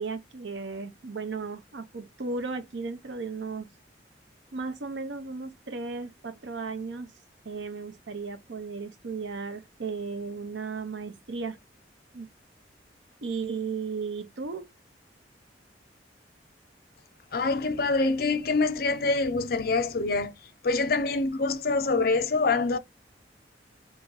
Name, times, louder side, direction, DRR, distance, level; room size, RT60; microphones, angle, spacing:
voice 1, 0.0-3.7 4.5-7.1 7.4-11.6 12.1-12.3 13.2-14.7, right 4 dB, 80° right, 0.7 m, -35 dB
voice 2, 17.3-20.3 20.6-22.8, left 3 dB, 55° left, 0.5 m, -25 dB
3.0 x 2.6 x 3.8 m
head